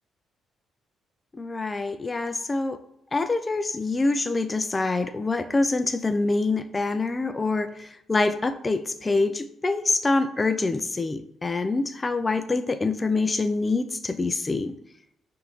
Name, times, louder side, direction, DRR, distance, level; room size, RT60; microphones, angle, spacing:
voice 1, 1.3-2.8 3.1-14.7, left 3 dB, 25° left, 10 dB, 0.3 m, -25 dB
5.5 x 2.6 x 3.0 m, 0.78 s
cardioid pair, 90°, 0 cm